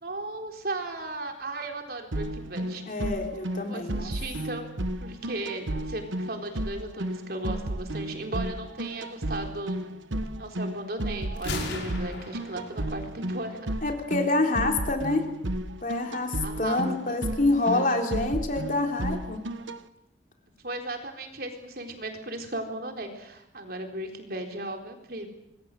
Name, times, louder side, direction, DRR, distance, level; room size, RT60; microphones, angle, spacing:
voice 1, 0.0-2.8 3.7-4.7 5.0-9.8 10.4-13.8 16.4-17.2 17.7-18.3 20.6-25.3, right 2 dB, 55° right, 3 dB, 4.1 m, -36 dB
sound 1, 2.1-19.8, right 1 dB, 85° right, 1.4 m, -33 dB
voice 2, 2.9-4.1 13.8-15.2 15.8-19.4, left 2 dB, 45° left, 3 dB, 3.7 m, -27 dB
Gunshot gunfire, 11.4-13.3, left 3 dB, 85° left, 5.6 m, -37 dB
26.0 x 21.5 x 7.8 m, 0.85 s
head